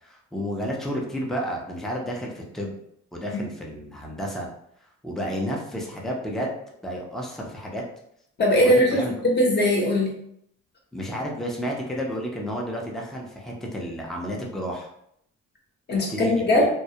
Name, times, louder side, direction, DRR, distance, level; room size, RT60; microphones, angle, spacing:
voice 1, 0.0-2.8 3.1-4.5 5.0-6.5 6.8-7.8 8.6-9.1 10.9-14.9 15.9-16.7, equal, ahead, -1 dB, 0.5 m, -31 dB
voice 2, 8.4-10.1 15.9-16.7, left 1 dB, 35° left, -1 dB, 0.7 m, -20 dB
2.2 x 2.0 x 2.7 m, 0.73 s
cardioid pair, 90°, 30 cm